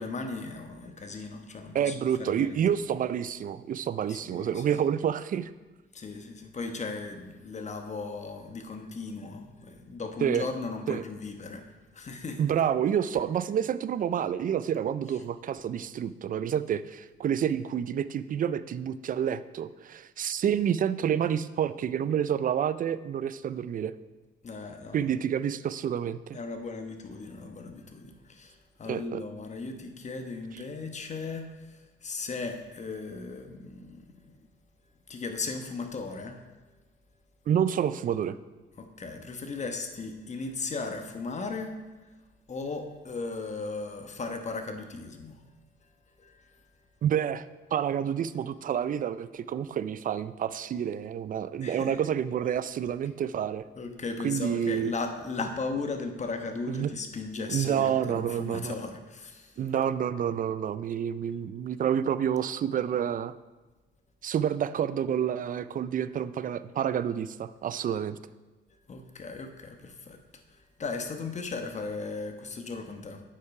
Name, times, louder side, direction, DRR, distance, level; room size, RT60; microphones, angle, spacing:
voice 1, 0.0-2.6 4.1-4.6 5.9-11.7 11.9-12.4 24.4-25.0 26.3-34.5 35.1-36.4 38.8-41.7 42.5-45.4 46.2-46.4 51.6-52.0 53.8-59.5 68.9-70.2 70.8-73.2, left 3 dB, 35° left, 5 dB, 1.1 m, -37 dB
voice 2, 1.7-5.5 10.2-10.5 10.9-11.0 12.4-23.9 24.9-26.4 28.9-29.2 30.5-30.6 37.5-38.4 47.0-47.4 47.7-53.6 54.2-54.9 56.7-56.9 57.5-58.8 59.6-63.3 64.2-68.2, right 9 dB, 45° right, 15 dB, 0.4 m, -28 dB
8.2 x 5.7 x 4.8 m, 1.2 s
cardioid pair, 90°, 20 cm